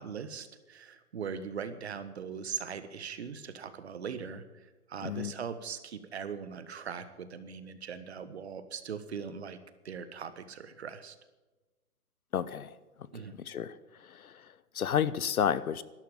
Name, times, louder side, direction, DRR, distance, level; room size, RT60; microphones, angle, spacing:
voice 1, 0.0-9.6 9.8-11.2 13.1-13.4, right 6 dB, 45° right, 11 dB, 1.4 m, -40 dB
voice 2, 12.3-12.7 13.1-13.7 14.0-15.8, left 8 dB, 70° left, 17 dB, 1.0 m, -32 dB
13.0 x 12.5 x 7.2 m, 1.1 s
hypercardioid pair, 170°, 45 cm